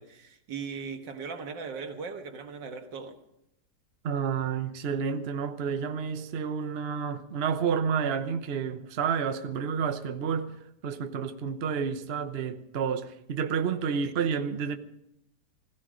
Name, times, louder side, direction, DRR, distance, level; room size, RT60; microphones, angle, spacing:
voice 1, 0.0-3.2 14.0-14.1, right 5 dB, 85° right, 2.2 m, -39 dB
voice 2, 4.0-10.6 10.8-14.8, right 6 dB, 45° right, 0.9 m, -30 dB
16.5 x 16.5 x 5.1 m
omnidirectional pair, 1.9 m